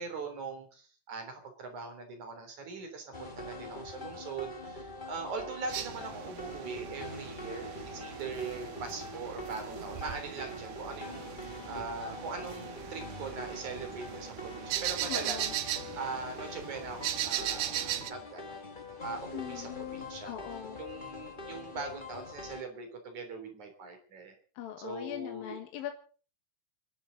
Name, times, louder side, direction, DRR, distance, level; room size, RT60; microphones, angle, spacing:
voice 1, 0.0-15.5 15.9-18.6 19.0-20.4 20.8-24.4 24.8-25.6, right 4 dB, 55° right, 5 dB, 4.7 m, -41 dB
sound 1, 3.1-22.6, left 2 dB, 60° left, 0.5 m, -44 dB
sound 2, 5.7-18.1, right 12 dB, 90° right, 3.0 m, -39 dB
voice 2, 15.1-15.5 19.3-20.8 24.6-25.9, left 11 dB, 75° left, 5 dB, 3.4 m, -41 dB
30.0 x 12.0 x 4.1 m, 0.41 s
omnidirectional pair, 4.2 m